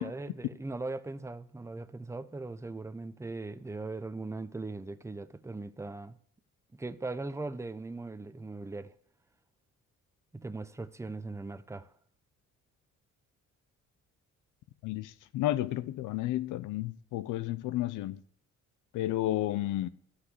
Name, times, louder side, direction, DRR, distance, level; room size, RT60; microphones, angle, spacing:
voice 1, 0.0-6.2 6.7-8.9 10.3-11.9, right 3 dB, 10° right, 0.7 m, -39 dB
voice 2, 14.8-18.2 18.9-19.9, left 14 dB, 90° left, 0.7 m, -32 dB
13.0 x 5.9 x 8.0 m
cardioid pair, 90°, 30 cm